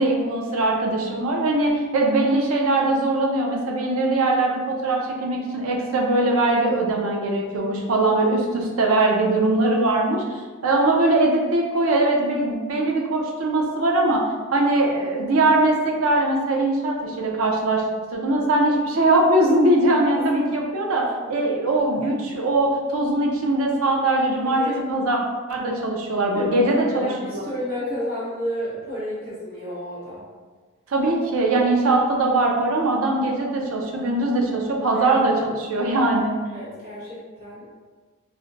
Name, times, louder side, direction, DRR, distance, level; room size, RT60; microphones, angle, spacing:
voice 1, 0.0-14.2 14.5-17.8 18.1-25.2 25.5-27.4 30.9-36.4, right 2 dB, 80° right, 0 dB, 0.6 m, -21 dB
voice 2, 21.2-21.6 24.6-24.8 26.3-30.2 34.9-35.1 36.5-37.8, left 1 dB, 45° right, -10 dB, 1.0 m, -31 dB
2.5 x 2.1 x 3.8 m, 1.4 s
head